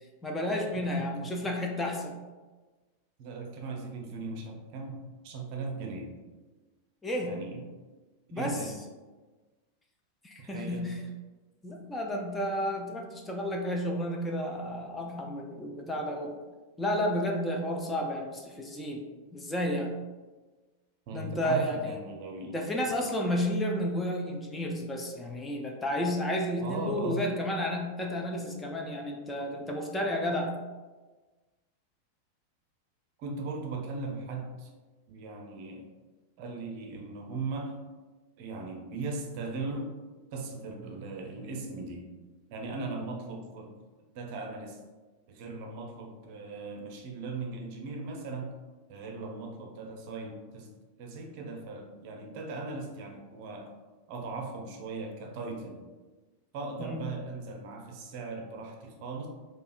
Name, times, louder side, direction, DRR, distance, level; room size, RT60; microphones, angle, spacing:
voice 1, 0.2-2.2 7.0-7.4 8.3-8.8 10.2-11.0 11.6-16.3 16.8-19.0 19.3-19.9 21.1-22.0 22.5-30.5 56.8-57.0, left 1 dB, 15° left, 1 dB, 0.5 m, -31 dB
voice 2, 1.0-1.3 3.2-6.1 7.2-7.6 8.3-8.8 10.4-10.9 21.1-22.6 22.9-23.0 26.6-27.2 33.2-34.7 35.1-35.9 36.4-37.8 38.4-39.9 40.3-42.1 42.5-43.7 44.1-44.8 45.3-48.5 48.9-50.7 51.0-53.7 54.1-55.8 56.5-59.3, right 3 dB, 45° right, 2 dB, 0.5 m, -38 dB
4.7 x 2.3 x 2.4 m, 1.3 s
figure-of-eight pair, 90°, 0 cm